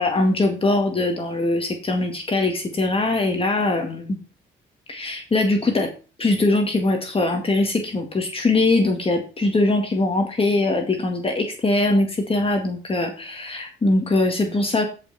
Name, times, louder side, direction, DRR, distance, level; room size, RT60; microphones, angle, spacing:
voice 1, 0.0-4.2 4.9-5.9 6.2-14.9, left 2 dB, 30° left, 3 dB, 2.0 m, -21 dB
15.0 x 5.6 x 4.2 m, 0.35 s
cardioid pair, 90°, 20 cm